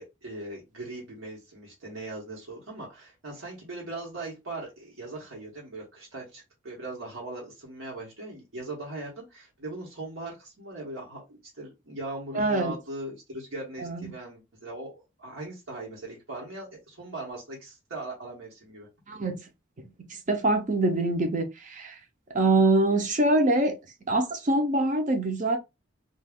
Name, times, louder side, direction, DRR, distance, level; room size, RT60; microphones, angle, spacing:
voice 1, 0.0-18.9, right 2 dB, 80° right, 1.1 m, -40 dB
voice 2, 12.3-12.7 13.8-14.0 19.1-19.4 20.1-22.0 22.3-23.8 24.1-25.6, right 2 dB, 35° right, 0.5 m, -24 dB
2.4 x 2.3 x 3.5 m
head